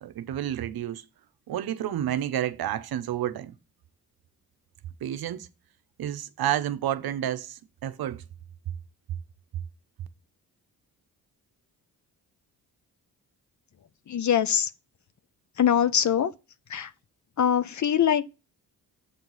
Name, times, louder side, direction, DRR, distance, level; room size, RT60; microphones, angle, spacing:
voice 1, 0.0-1.0 1.5-3.5 5.0-5.5 6.0-8.2, right 11 dB, 70° right, 0.7 m, -30 dB
voice 2, 14.1-14.7 15.6-16.3 16.7-16.9 17.4-18.3, left 9 dB, 50° left, 0.7 m, -23 dB
8.1 x 4.5 x 4.0 m
cardioid pair, 60°, 38 cm